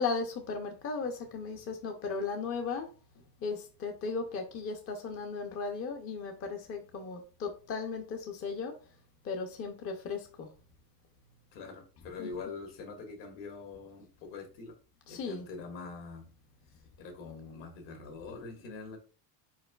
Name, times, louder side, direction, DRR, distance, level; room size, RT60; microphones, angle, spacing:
voice 1, 0.0-2.9 3.4-8.8 9.2-10.5 12.2-12.3 15.1-15.5, left 4 dB, 30° left, 3 dB, 0.5 m, -36 dB
voice 2, 11.5-14.7 15.1-16.3 17.0-19.0, left 4 dB, 65° left, 3 dB, 1.7 m, -44 dB
4.7 x 4.5 x 2.3 m, 0.36 s
cardioid pair, 155°, 46 cm